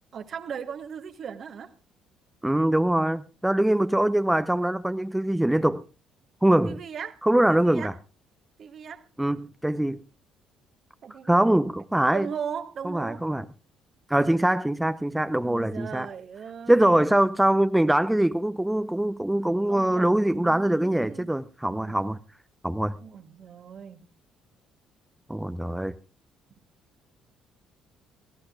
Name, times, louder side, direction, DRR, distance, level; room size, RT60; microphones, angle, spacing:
voice 1, 0.1-1.7 6.6-7.2 7.5-7.9 8.6-9.0 11.0-11.5 12.1-13.2 15.4-17.1 19.7-21.3 21.7-22.0 23.0-24.0, right 7 dB, 50° right, 9 dB, 1.4 m, -38 dB
voice 2, 2.4-5.8 6.4-6.8 7.2-7.9 9.2-10.0 11.3-12.3 12.8-13.5 14.1-16.1 16.7-22.2 22.6-22.9 25.3-25.9, right 1 dB, 10° right, 11 dB, 0.7 m, -23 dB
23.0 x 15.0 x 2.3 m, 0.31 s
hypercardioid pair, 50°, 0 cm